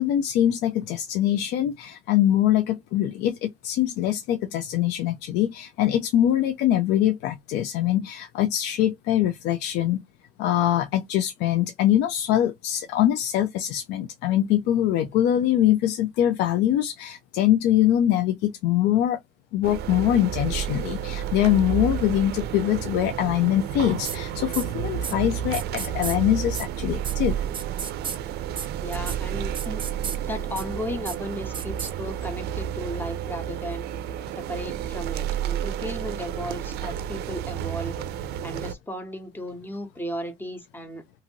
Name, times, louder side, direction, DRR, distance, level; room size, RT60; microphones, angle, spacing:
voice 1, 0.0-10.0 10.4-19.2 19.5-27.4, left 12 dB, 90° left, 0.4 m, -23 dB
sound 1, 19.6-38.7, right 10 dB, 70° right, 0.4 m, -31 dB
sound 2, 24.0-24.2 24.5-24.6 25.0-25.1 25.5-26.2 26.5-26.7 27.0-27.1 27.5-28.2 28.6-28.7 28.9-29.2 29.5-30.2 30.6-30.7 31.0-31.2 31.5-31.9, right 6 dB, 30° right, 0.6 m, -32 dB
voice 2, 28.8-29.8 30.2-33.9 34.4-38.0 38.4-41.0, equal, 10° left, 0.9 m, -35 dB
2.6 x 2.5 x 2.8 m
cardioid pair, 110°, 17 cm